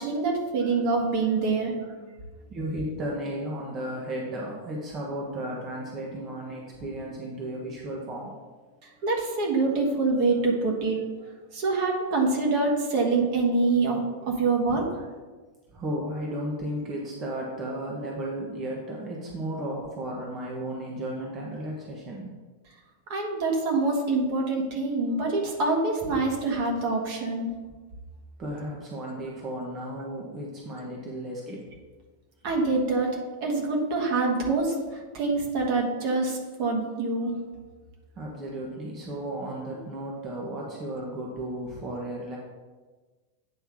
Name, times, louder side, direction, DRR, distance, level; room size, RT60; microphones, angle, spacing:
voice 1, 0.0-2.1 8.8-11.0 11.5-14.8 23.1-27.5 32.4-37.4, right 3 dB, 45° right, 0 dB, 1.5 m, -25 dB
voice 2, 2.5-8.3 14.7-14.8 15.7-22.3 28.4-31.7 38.2-42.4, right 1 dB, 30° right, -3 dB, 1.2 m, -34 dB
8.7 x 3.4 x 6.2 m, 1.3 s
figure-of-eight pair, 90°, 0 cm